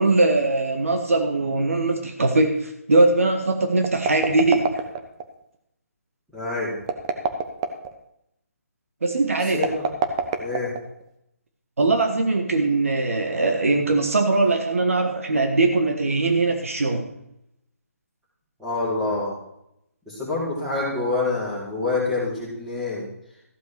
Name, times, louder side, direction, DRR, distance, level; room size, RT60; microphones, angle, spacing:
voice 1, 0.0-4.7 9.0-9.6 11.8-17.0, right 2 dB, 60° right, 4 dB, 1.6 m, -21 dB
sound 1, 3.8-5.3 6.8-7.9 9.5-11.1, right 6 dB, 25° right, 1.0 m, -26 dB
voice 2, 6.3-6.7 9.5-9.8 10.4-10.7 18.6-19.3 20.1-23.0, left 3 dB, 5° right, -8 dB, 4.5 m, -26 dB
14.5 x 8.1 x 4.8 m, 0.78 s
figure-of-eight pair, 145°, 8 cm